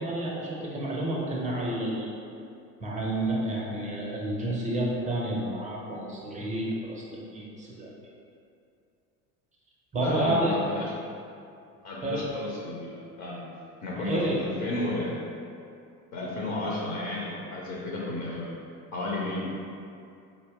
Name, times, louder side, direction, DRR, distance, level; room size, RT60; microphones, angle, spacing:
voice 1, 0.0-2.1 2.8-7.9 9.9-10.5 12.0-12.3 13.9-14.4, right 1 dB, 15° right, -4 dB, 0.6 m, -30 dB
voice 2, 10.0-10.9 11.8-13.4 13.8-15.2 16.1-18.5 18.9-19.5, left 2 dB, 35° left, -4 dB, 0.6 m, -32 dB
4.1 x 2.0 x 3.4 m, 2.5 s
figure-of-eight pair, 65°, 50 cm